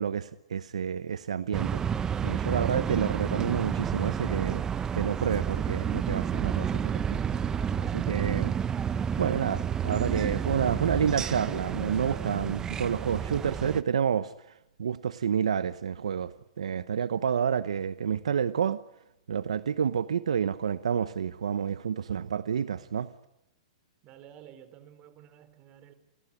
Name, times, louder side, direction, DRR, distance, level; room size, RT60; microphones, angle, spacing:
voice 1, 0.0-1.8 2.2-4.6 4.9-7.2 7.8-8.6 9.2-14.3 14.8-18.8 19.3-23.1, right 7 dB, 80° right, 15 dB, 0.9 m, -29 dB
sound 1, 1.5-13.8, right 8 dB, 20° right, 0.9 m, -30 dB
voice 2, 24.0-25.9, right 10 dB, 35° right, 12 dB, 4.0 m, -51 dB
28.0 x 18.5 x 9.7 m, 0.89 s
hypercardioid pair, 130°, 3 cm